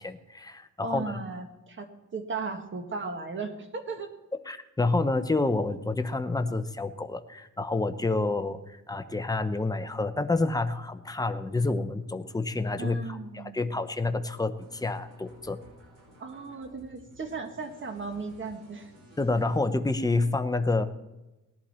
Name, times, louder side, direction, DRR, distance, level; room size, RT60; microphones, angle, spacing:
voice 1, 0.0-1.2 4.5-15.6 19.2-20.8, left 3 dB, 10° left, 9 dB, 0.7 m, -28 dB
voice 2, 0.8-4.1 12.8-13.7 16.2-18.9, right 4 dB, 35° right, 6 dB, 1.6 m, -36 dB
sound 1, 14.6-19.8, right 1 dB, 80° right, 5.9 m, -54 dB
19.0 x 11.5 x 4.3 m, 1.0 s
wide cardioid pair, 175°, 32 cm